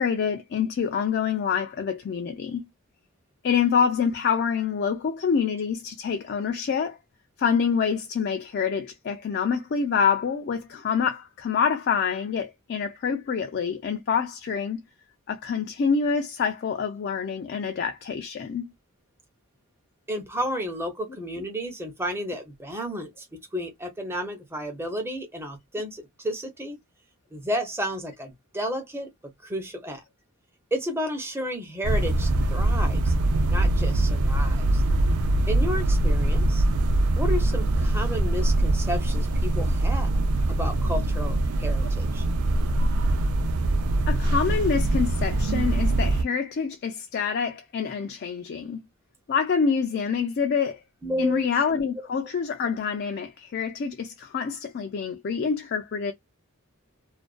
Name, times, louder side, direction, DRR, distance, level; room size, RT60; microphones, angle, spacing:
voice 1, 0.0-2.6 3.4-7.0 7.4-14.8 15.3-18.7 44.1-48.8 49.3-50.8 51.2-56.1, left 6 dB, 50° left, 0.3 m, -26 dB
voice 2, 20.1-26.8 27.3-30.0 30.7-33.1 33.5-34.8 35.5-36.6 37.2-40.1 40.5-42.2 51.0-51.5, equal, 10° right, 0.6 m, -32 dB
sound 1, 31.8-46.2, right 2 dB, 80° right, 0.4 m, -23 dB
2.4 x 2.2 x 2.3 m
head